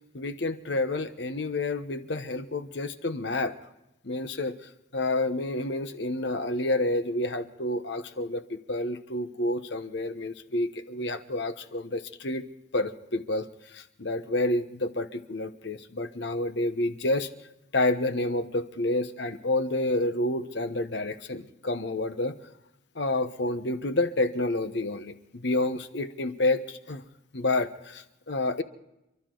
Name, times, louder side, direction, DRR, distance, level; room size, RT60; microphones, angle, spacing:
voice 1, 0.1-3.5 4.0-4.5 4.9-12.4 12.7-17.3 17.7-22.3 22.9-27.0 27.3-28.6, left 2 dB, 60° left, 10 dB, 1.1 m, -29 dB
28.5 x 12.5 x 3.9 m, 0.89 s
head